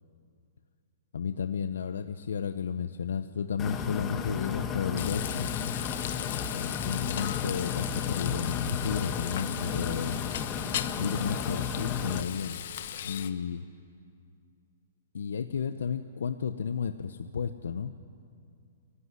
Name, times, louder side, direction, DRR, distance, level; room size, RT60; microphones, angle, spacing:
voice 1, 1.1-5.5 6.5-10.2 11.0-12.6 13.0-13.7 15.1-17.9, left 6 dB, 85° left, 10 dB, 0.8 m, -33 dB
sound 1, 3.6-12.2, left 7 dB, 20° left, 1.3 m, -33 dB
Frying (food), 5.0-13.3, left 10 dB, 60° left, 1.1 m, -38 dB
27.0 x 15.5 x 9.8 m, 2.3 s
hypercardioid pair, 155°, 0 cm